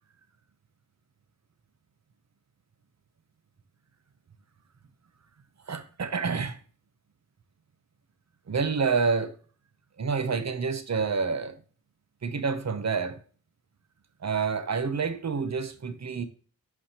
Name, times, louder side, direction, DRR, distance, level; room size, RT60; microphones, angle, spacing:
voice 1, 5.7-6.6 8.5-9.3 10.0-11.6 12.2-13.2 14.2-16.3, right 5 dB, 45° right, 0.9 m, -28 dB
11.0 x 4.9 x 2.9 m
wide cardioid pair, 100°, 37 cm